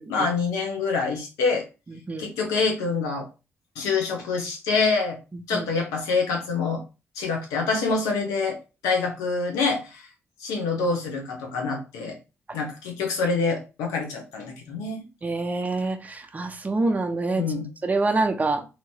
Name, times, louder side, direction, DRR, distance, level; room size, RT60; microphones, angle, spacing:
voice 1, 0.1-1.6 2.2-3.3 3.8-5.2 5.5-6.8 7.2-8.6 8.8-10.0 10.4-12.1 12.5-15.1 17.4-17.7, left 4 dB, 90° left, 2 dB, 0.8 m, -26 dB
voice 2, 15.2-17.4 17.8-18.7, right 3 dB, 30° right, 6 dB, 0.7 m, -25 dB
2.9 x 2.9 x 2.7 m, 0.30 s
supercardioid pair, 50°, 6 cm